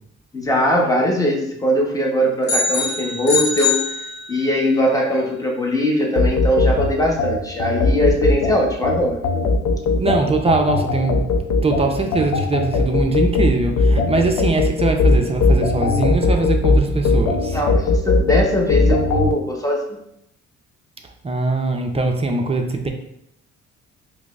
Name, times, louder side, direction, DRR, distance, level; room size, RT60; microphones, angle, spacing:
voice 1, 0.3-3.8 4.3-9.2 17.4-19.8, equal, 10° left, -1 dB, 0.8 m, -20 dB
sound 1, 2.5-4.6, left 4 dB, 60° left, 1.0 m, -23 dB
sound 2, 6.2-19.3, left 3 dB, 85° left, 0.5 m, -19 dB
voice 2, 10.0-11.3 11.6-17.6 21.2-22.9, right 3 dB, 20° right, 3 dB, 0.4 m, -21 dB
4.8 x 2.0 x 2.3 m, 0.76 s
cardioid pair, 90°, 30 cm